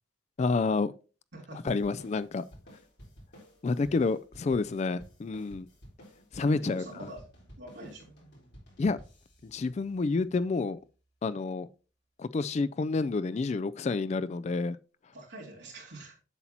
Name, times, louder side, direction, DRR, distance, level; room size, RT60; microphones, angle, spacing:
voice 1, 0.4-0.9 1.7-2.5 3.6-5.7 6.3-6.9 8.8-9.0 9.4-10.8 11.2-11.7 12.2-14.8, left 3 dB, 35° left, 0.3 m, -29 dB
voice 2, 1.3-1.8 6.4-7.3 7.6-8.1 15.1-16.2, right 1 dB, 60° right, 3.4 m, -45 dB
sound 1, 1.7-10.5, equal, 60° left, 4.0 m, -53 dB
8.0 x 7.3 x 2.9 m
head